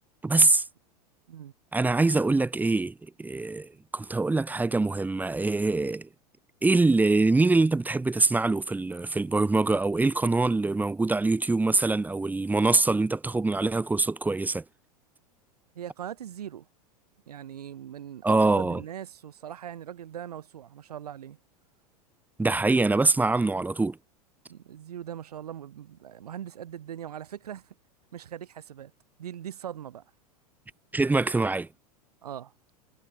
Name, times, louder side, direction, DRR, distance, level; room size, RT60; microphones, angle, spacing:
voice 1, 0.2-0.7 1.7-6.1 6.6-14.6 18.2-18.8 22.4-24.0 30.9-31.7, right 3 dB, 10° right, 1.2 m, -24 dB
voice 2, 15.7-16.7 17.3-21.4 24.5-27.7 28.1-28.9 29.2-30.0 32.2-32.5, right 10 dB, 75° right, 7.9 m, -40 dB
hypercardioid pair, 95°, 20 cm